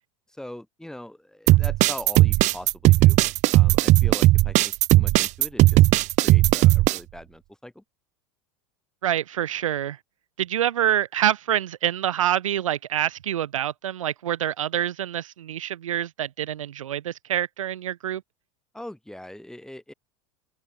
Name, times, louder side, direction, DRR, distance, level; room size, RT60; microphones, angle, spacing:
voice 1, 0.3-3.2 3.5-5.9 6.2-7.8 18.7-19.9, left 1 dB, 5° left, 4.8 m, -41 dB
sound 1, 1.5-7.0, right 18 dB, 45° right, 0.7 m, -17 dB
voice 2, 9.0-10.0 10.4-18.2, right 11 dB, 90° right, 1.8 m, -26 dB
open air
hypercardioid pair, 100°, 16 cm